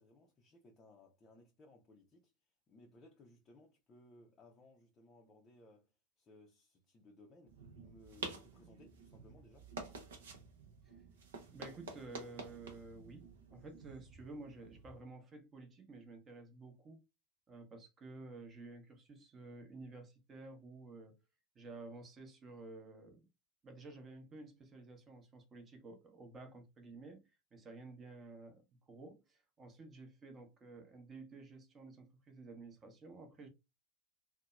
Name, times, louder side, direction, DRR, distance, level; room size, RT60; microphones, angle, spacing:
voice 1, 0.0-9.7, left 2 dB, 25° left, 0.5 m, -62 dB
sound 1, 7.5-15.0, right 3 dB, 65° right, 0.6 m, -50 dB
voice 2, 11.5-17.0 17.5-21.2 21.5-23.2 23.6-33.5, right 3 dB, 25° right, 0.8 m, -52 dB
2.8 x 2.1 x 2.3 m
figure-of-eight pair, 80°, 0 cm